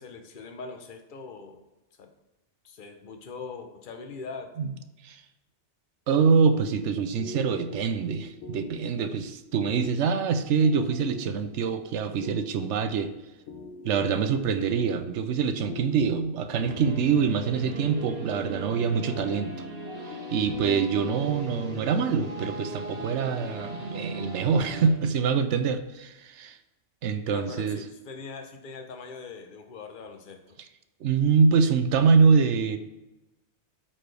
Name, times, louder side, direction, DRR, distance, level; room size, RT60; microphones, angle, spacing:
voice 1, 0.0-1.6 2.0-2.1 2.6-4.5 27.3-30.4, left 4 dB, 50° left, 5 dB, 0.9 m, -41 dB
voice 2, 6.1-13.1 13.8-19.5 20.3-26.6 27.0-27.8 31.0-32.8, right 5 dB, 80° right, 10 dB, 0.9 m, -25 dB
sound 1, 7.1-23.9, left 4 dB, 80° left, 1.0 m, -44 dB
sound 2, 16.6-24.9, right 2 dB, 60° right, 1.5 m, -38 dB
13.0 x 4.3 x 3.3 m, 1.0 s
omnidirectional pair, 1.2 m